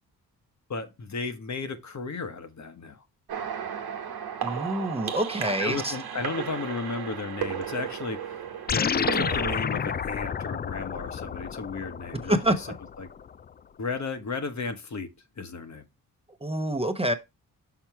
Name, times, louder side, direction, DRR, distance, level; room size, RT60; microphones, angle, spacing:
voice 1, 0.7-3.0 5.6-12.7 13.0-13.1 13.8-15.8, left 4 dB, 50° left, 1.1 m, -34 dB
sound 1, 3.3-9.6, right 8 dB, 75° right, 1.2 m, -34 dB
voice 2, 4.4-5.9 12.3-12.7 16.4-17.1, right 1 dB, 15° right, 1.0 m, -26 dB
sound 2, 8.7-13.3, left 7 dB, 25° left, 0.3 m, -30 dB
5.9 x 4.4 x 4.6 m
cardioid pair, 55°, 37 cm